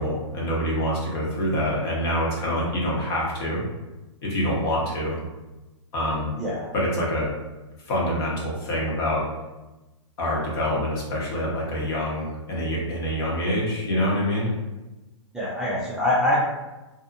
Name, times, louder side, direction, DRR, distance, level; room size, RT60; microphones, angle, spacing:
voice 1, 0.0-3.6 4.2-5.2 5.9-6.3 6.7-7.3 7.8-9.3 10.2-14.5, equal, 50° left, -4 dB, 1.1 m, -26 dB
voice 2, 15.3-16.4, left 1 dB, 5° right, -9 dB, 0.4 m, -24 dB
2.7 x 2.3 x 2.6 m, 1.1 s
hypercardioid pair, 135°, 16 cm